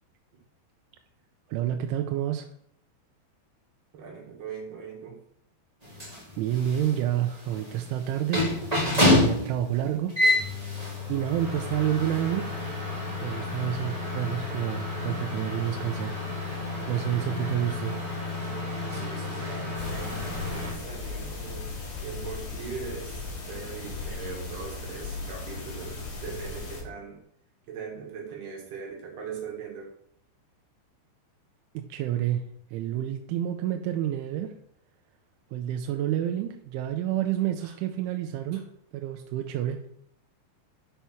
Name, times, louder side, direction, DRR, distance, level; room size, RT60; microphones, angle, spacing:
voice 1, 1.5-2.5 6.4-8.5 8.8-10.1 11.1-12.5 13.2-16.2 16.9-17.9 31.7-32.4 32.7-34.5 35.5-38.6 38.9-39.8, right 11 dB, 90° right, 4 dB, 3.1 m, -29 dB
voice 2, 3.9-5.2 18.9-27.2 27.7-29.9 37.6-37.8, right 5 dB, 60° right, 0 dB, 3.8 m, -40 dB
sound 1, 5.8-20.7, left 2 dB, 10° right, 2.3 m, -29 dB
sound 2, 19.8-26.8, left 3 dB, 85° left, 6.5 m, -37 dB
11.5 x 5.7 x 6.0 m, 0.68 s
omnidirectional pair, 5.5 m